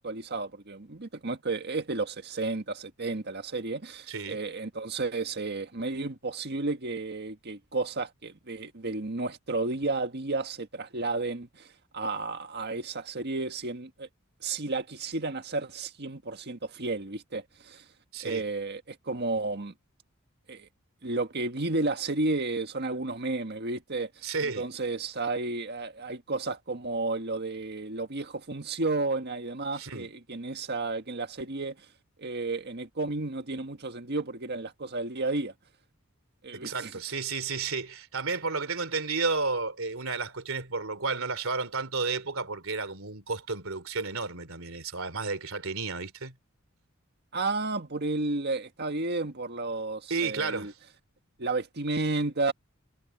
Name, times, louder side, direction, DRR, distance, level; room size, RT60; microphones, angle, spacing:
voice 1, 0.0-11.7 11.9-14.1 14.4-17.8 18.2-19.7 20.5-20.7 21.0-24.1 24.4-31.7 32.2-35.5 36.4-36.9 47.3-50.7 51.4-52.5, right 3 dB, 50° right, 1.7 m, -32 dB
voice 2, 4.1-4.4 18.1-18.4 24.2-24.7 29.7-30.1 36.5-46.3 50.1-50.7, right 4 dB, 70° right, 3.5 m, -32 dB
head